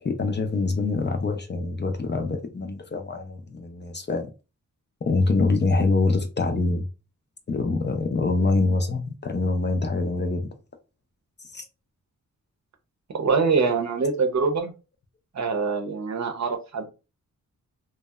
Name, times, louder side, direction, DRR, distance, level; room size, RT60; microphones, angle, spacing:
voice 1, 0.0-4.3 5.0-6.9 7.5-10.5 11.5-11.6, left 3 dB, 35° left, 0.4 m, -25 dB
voice 2, 13.1-14.7 15.3-16.9, right 4 dB, 55° right, 0.6 m, -24 dB
2.8 x 2.0 x 2.2 m
wide cardioid pair, 105°, 33 cm